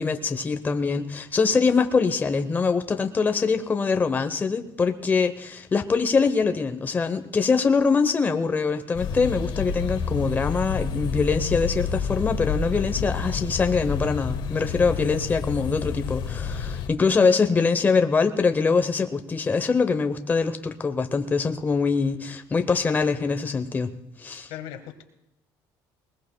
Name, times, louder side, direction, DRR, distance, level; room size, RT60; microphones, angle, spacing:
voice 1, 0.0-23.9 24.2-24.5, left 4 dB, 20° left, 7 dB, 0.8 m, -23 dB
sound 1, 8.9-16.9, left 5 dB, 60° left, 1.3 m, -29 dB
voice 2, 24.5-25.0, left 11 dB, 80° left, 7 dB, 1.4 m, -38 dB
20.5 x 20.5 x 2.2 m, 0.84 s
cardioid pair, 125°, 9 cm